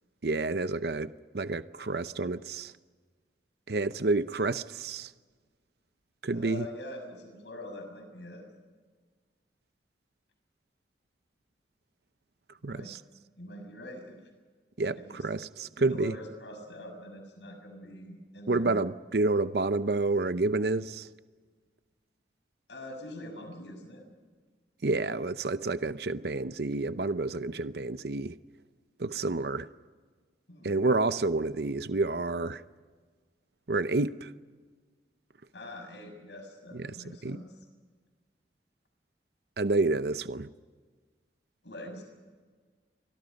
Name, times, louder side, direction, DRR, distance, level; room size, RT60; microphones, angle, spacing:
voice 1, 0.2-2.7 3.7-5.1 6.2-6.7 12.6-13.0 14.8-16.1 18.5-21.1 24.8-28.4 29.0-29.7 30.6-32.6 33.7-34.3 36.7-37.4 39.6-40.5, right 3 dB, 65° right, 13 dB, 0.7 m, -29 dB
voice 2, 6.3-8.4 12.6-12.9 13.4-14.2 14.9-15.2 15.8-18.8 22.7-24.0 30.5-30.8 35.5-37.5 41.6-42.0, left 1 dB, 80° left, 5 dB, 6.7 m, -44 dB
29.5 x 24.0 x 5.3 m, 1.5 s
head